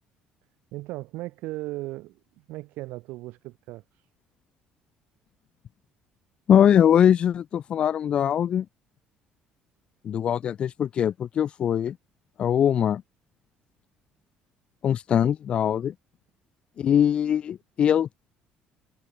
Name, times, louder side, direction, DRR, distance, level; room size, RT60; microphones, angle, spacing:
voice 1, 0.7-3.8, right 19 dB, 80° right, 4.9 m, -37 dB
voice 2, 6.5-8.7 10.0-12.0 12.4-13.0 14.8-15.9 16.8-18.1, left 9 dB, 35° left, 0.4 m, -22 dB
cardioid pair, 160°, 3 cm